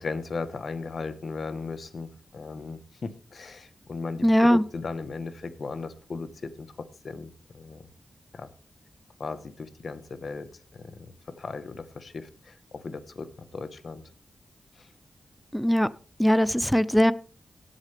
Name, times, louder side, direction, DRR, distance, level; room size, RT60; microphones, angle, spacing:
voice 1, 0.0-7.8 8.3-8.5 9.2-10.5 10.7-14.0 14.7-14.9, left 4 dB, 65° left, 1.2 m, -37 dB
voice 2, 4.2-4.6 15.5-15.9 16.2-17.1, equal, 5° left, 0.6 m, -20 dB
17.5 x 8.2 x 3.4 m
cardioid pair, 75°, 0 cm